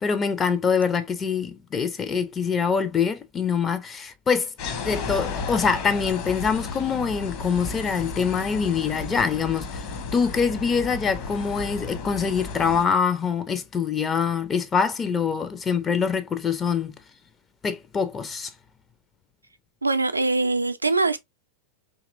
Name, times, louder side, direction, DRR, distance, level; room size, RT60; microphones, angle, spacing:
voice 1, 0.0-4.5 4.8-9.8 10.1-16.9 17.6-18.5, left 6 dB, 20° left, 0.5 m, -24 dB
sound 1, 4.6-12.9, left 4 dB, 45° left, 1.0 m, -33 dB
voice 2, 19.8-21.2, right 3 dB, 80° right, 0.4 m, -23 dB
4.0 x 2.9 x 2.5 m
figure-of-eight pair, 90°, 0 cm